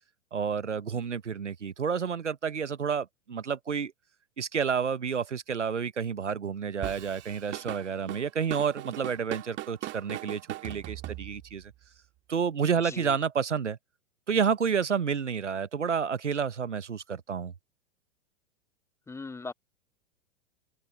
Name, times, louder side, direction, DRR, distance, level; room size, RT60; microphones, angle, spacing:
voice 1, 0.3-3.9 4.4-11.7 12.3-13.8 14.3-17.5, right 6 dB, 85° right, 1.0 m, -30 dB
Drum kit / Drum, 6.8-11.6, right 17 dB, 30° right, 2.3 m, -39 dB
voice 2, 12.8-13.2 19.1-19.5, left 3 dB, 10° left, 0.9 m, -39 dB
open air
figure-of-eight pair, 100°, 35 cm